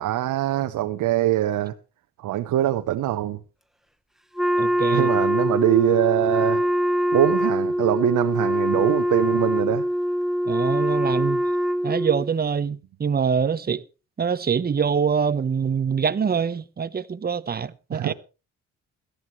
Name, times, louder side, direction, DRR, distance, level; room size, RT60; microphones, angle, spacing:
voice 1, 0.0-1.7 2.2-3.4 4.9-6.6 7.1-9.9 17.9-18.1, right 13 dB, 80° right, 1.0 m, -23 dB
Wind instrument woodwind instrument, 4.4-12.3, equal, ahead, 0.8 m, -23 dB
voice 2, 4.6-5.1 5.4-5.5 10.5-11.4 11.8-13.8 14.2-18.1, right 6 dB, 30° right, 0.9 m, -24 dB
17.5 x 13.0 x 3.2 m
cardioid pair, 90°, 30 cm